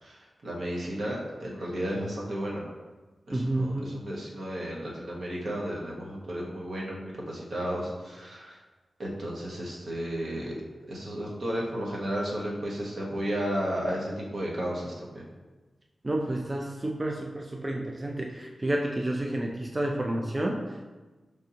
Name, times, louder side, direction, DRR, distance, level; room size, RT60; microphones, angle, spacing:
voice 1, 0.0-2.6 3.3-8.6 9.0-10.5 10.9-15.2, equal, 75° right, -4 dB, 1.1 m, -33 dB
voice 2, 3.3-3.9 16.0-20.9, right 1 dB, 25° right, 1 dB, 0.4 m, -30 dB
5.1 x 3.5 x 2.8 m, 1.2 s
wide cardioid pair, 100°, 0 cm